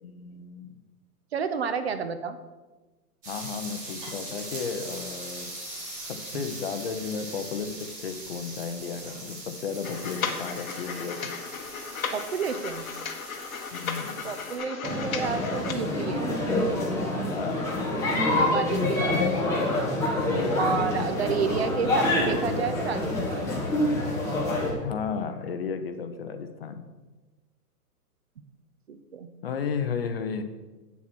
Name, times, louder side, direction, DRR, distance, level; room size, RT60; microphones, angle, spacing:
voice 1, 0.0-0.8 3.3-11.3 13.7-14.3 17.3-19.3 20.2-21.5 24.8-26.9 29.4-30.4, left 6 dB, 40° left, 8 dB, 0.7 m, -34 dB
voice 2, 1.3-2.4 6.3-6.4 12.1-12.9 14.2-16.3 18.4-19.3 20.0-20.3 20.6-23.6 28.9-29.3, right 6 dB, 45° right, 10 dB, 0.7 m, -30 dB
sound 1, 3.2-14.6, right 2 dB, 15° right, 2.3 m, -41 dB
sound 2, 9.8-15.7, left 6 dB, 60° left, 1.4 m, -35 dB
sound 3, 14.8-24.7, left 1 dB, 5° left, 1.5 m, -26 dB
8.7 x 7.2 x 6.1 m, 1.2 s
hypercardioid pair, 170°, 47 cm